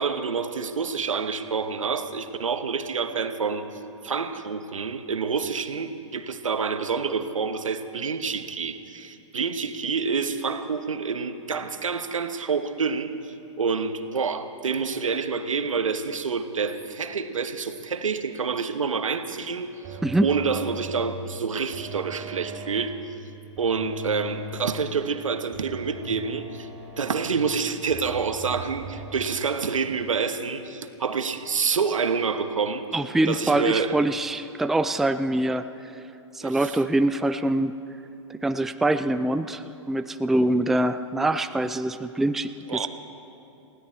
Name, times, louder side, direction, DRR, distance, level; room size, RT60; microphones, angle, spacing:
voice 1, 0.0-3.7 4.0-22.9 23.6-26.7 27.0-32.8 33.3-33.9 36.4-36.7 42.7-42.9, right 5 dB, 85° right, 9 dB, 1.1 m, -28 dB
sound 1, 19.8-21.2 21.7-23.1 23.6-25.0 25.5-27.4 27.9-29.2, right 1 dB, 30° right, 2.9 m, -39 dB
voice 2, 20.0-20.3 32.9-36.0 36.3-37.7 38.3-42.9, right 1 dB, ahead, 10 dB, 0.3 m, -24 dB
19.5 x 16.5 x 4.4 m, 2.9 s
hypercardioid pair, 110°, 16 cm